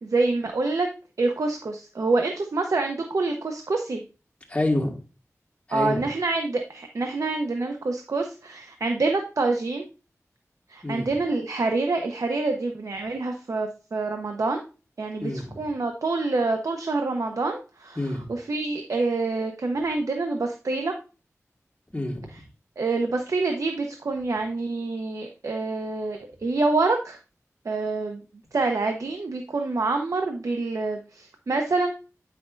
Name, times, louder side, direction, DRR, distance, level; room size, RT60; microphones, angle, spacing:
voice 1, 0.0-0.9 1.2-4.0 5.7-9.8 10.7-14.6 15.0-15.3 15.6-18.0 18.3-20.9 22.8-27.2 27.6-28.2 28.5-31.9, right 3 dB, 80° right, 4 dB, 0.7 m, -26 dB
voice 2, 4.5-4.9 5.7-6.1 10.8-11.1 15.2-15.6 18.0-18.3 21.9-22.4, left 1 dB, 25° left, 0 dB, 2.0 m, -27 dB
8.9 x 5.9 x 2.5 m, 0.33 s
wide cardioid pair, 75°, 5 cm